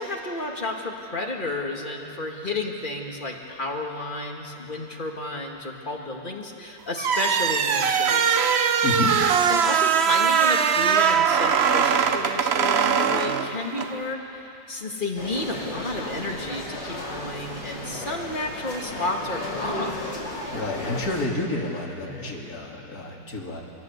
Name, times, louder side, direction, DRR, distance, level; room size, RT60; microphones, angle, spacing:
voice 1, 0.0-8.8 9.5-14.4 14.7-20.0, left 2 dB, 30° left, 1 dB, 2.0 m, -32 dB
sound 1, 7.0-13.9, right 7 dB, 55° right, 0.7 m, -21 dB
voice 2, 8.8-9.2 20.5-23.6, left 2 dB, 55° left, -1 dB, 2.9 m, -29 dB
sound 2, 15.2-21.3, left 1 dB, 75° left, 4.7 m, -34 dB
24.5 x 18.0 x 8.1 m, 2.9 s
omnidirectional pair, 1.9 m